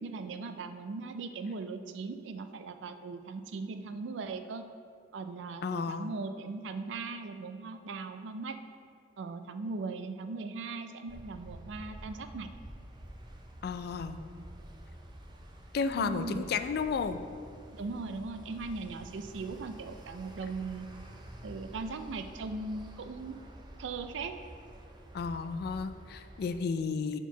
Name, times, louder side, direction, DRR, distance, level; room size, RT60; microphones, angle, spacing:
voice 1, 0.0-4.6 5.1-8.6 9.2-12.5 16.0-16.4 17.7-20.9 21.4-23.4 23.8-24.4, right 4 dB, 75° right, 9 dB, 0.4 m, -39 dB
voice 2, 5.6-6.1 13.6-14.2 15.7-17.2 25.1-27.2, left 5 dB, 55° left, 11 dB, 0.3 m, -32 dB
sound 1, 11.1-26.6, right 1 dB, 25° right, 0.5 m, -49 dB
4.5 x 4.5 x 5.6 m, 2.4 s
head